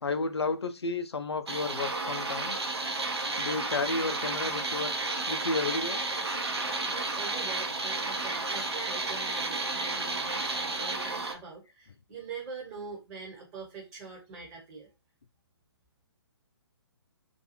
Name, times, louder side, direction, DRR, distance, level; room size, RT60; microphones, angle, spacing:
voice 1, 0.0-2.6 3.4-5.0 5.3-6.0, left 3 dB, 80° left, 0.4 m, -32 dB
sound 1, 1.5-11.3, right 3 dB, 75° right, 0.7 m, -32 dB
voice 2, 6.8-14.9, right 4 dB, 20° right, 1.1 m, -43 dB
2.5 x 2.3 x 2.8 m
figure-of-eight pair, 135°, 14 cm